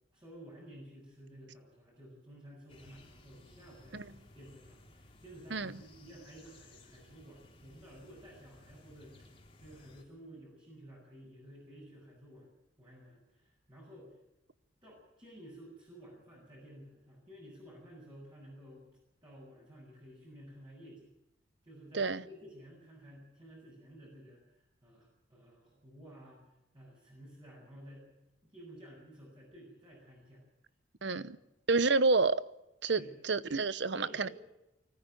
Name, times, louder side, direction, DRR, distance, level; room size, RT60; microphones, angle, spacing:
voice 1, 0.1-12.5 12.8-14.2 14.8-18.8 19.2-21.1 21.6-26.4 26.7-28.1 28.5-30.4 31.1-31.3 32.9-33.2 33.8-34.3, equal, 25° right, 7.9 m, -53 dB
sound 1, 2.7-10.0, left 2 dB, 25° left, 3.3 m, -59 dB
voice 2, 31.0-31.4 31.7-32.4 32.8-34.3, right 3 dB, 65° right, 0.9 m, -29 dB
25.0 x 14.5 x 9.2 m
head